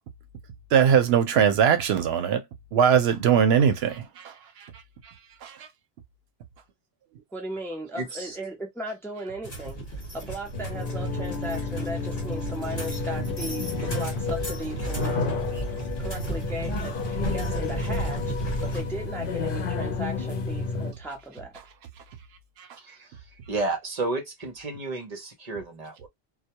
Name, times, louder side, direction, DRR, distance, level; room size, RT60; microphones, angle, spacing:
voice 1, 0.7-2.4 2.7-4.7 5.0-5.1 5.4-5.7 22.6-22.7, right 8 dB, 80° right, 0.8 m, -21 dB
voice 2, 7.3-9.8 10.1-15.5 16.0-18.3 18.6-21.5, right 1 dB, 5° left, 0.5 m, -36 dB
voice 3, 8.0-8.4 15.0-15.1 15.5-15.6 22.8-23.1 23.5-26.1, right 3 dB, 45° right, 0.7 m, -32 dB
sound 1, 9.4-18.8, right 3 dB, 40° left, 1.2 m, -34 dB
sound 2, 10.5-20.9, left 4 dB, 60° left, 0.8 m, -31 dB
2.2 x 2.2 x 2.8 m
omnidirectional pair, 1.1 m